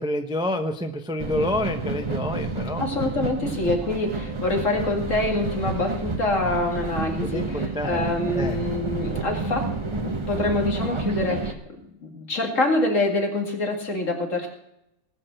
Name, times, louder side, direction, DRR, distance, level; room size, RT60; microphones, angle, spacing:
voice 1, 0.0-2.8 7.2-8.0 8.3-8.7, left 1 dB, 5° right, 6 dB, 0.6 m, -28 dB
sound 1, 1.2-11.5, right 2 dB, 20° right, 1.1 m, -29 dB
voice 2, 2.8-11.6 12.0-14.5, left 2 dB, 60° left, 2 dB, 2.6 m, -26 dB
19.0 x 6.7 x 7.8 m, 0.84 s
omnidirectional pair, 1.5 m